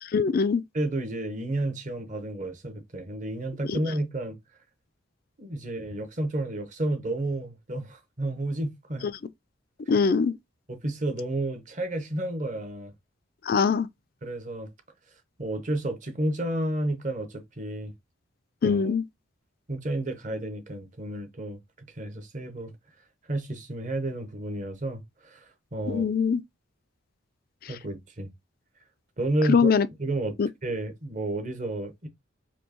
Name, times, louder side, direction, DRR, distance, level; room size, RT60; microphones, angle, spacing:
voice 1, 0.0-0.6 3.7-3.8 9.0-9.1 9.9-10.3 13.5-13.9 18.6-19.0 25.9-26.4 29.5-29.9 30.4-30.5, left 5 dB, 45° left, 0.3 m, -22 dB
voice 2, 0.7-4.4 5.4-9.1 10.7-12.9 14.2-14.7 15.4-17.9 18.6-18.9 19.7-22.7 23.3-26.1 27.7-28.3 29.2-29.7 30.0-30.4 30.6-32.1, right 1 dB, 35° right, 0.8 m, -31 dB
4.4 x 2.7 x 2.8 m
head